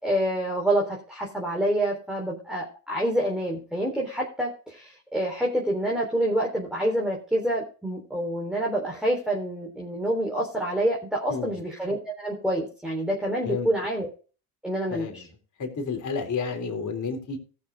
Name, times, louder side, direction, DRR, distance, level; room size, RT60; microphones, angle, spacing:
voice 1, 0.0-14.1 14.6-15.2, right 1 dB, ahead, -2 dB, 3.8 m, -27 dB
voice 2, 14.9-15.2 15.6-17.4, left 5 dB, 40° left, 2 dB, 4.0 m, -30 dB
18.5 x 6.7 x 3.6 m, 0.37 s
hypercardioid pair, 60°, 46 cm